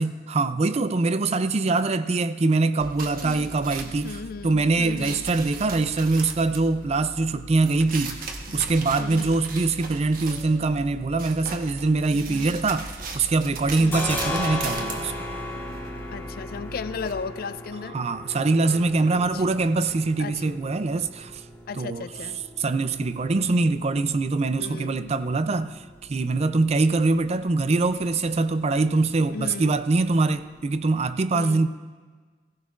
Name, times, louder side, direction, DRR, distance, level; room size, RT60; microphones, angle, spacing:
voice 1, 0.0-8.2 8.5-12.9 13.1-15.1 17.9-21.4 21.8-22.1 22.6-25.8 26.1-31.7, right 3 dB, 40° right, 0.4 m, -23 dB
sound 1, 2.8-17.1, right 3 dB, 55° right, 1.1 m, -38 dB
voice 2, 3.2-3.6 4.0-5.3 9.0-9.4 12.1-12.5 13.8-14.1 16.1-18.0 19.1-19.4 20.2-20.6 21.7-22.4 24.6-25.1 29.3-29.8 31.3-31.6, left 5 dB, 60° left, 0.4 m, -36 dB
sound 2, 10.3-12.4 15.5-20.0 22.1-24.0, right 1 dB, 35° left, 1.9 m, -52 dB
sound 3, 12.3-13.3 13.5-31.0, left 1 dB, 15° left, 1.9 m, -38 dB
16.5 x 16.0 x 2.5 m
head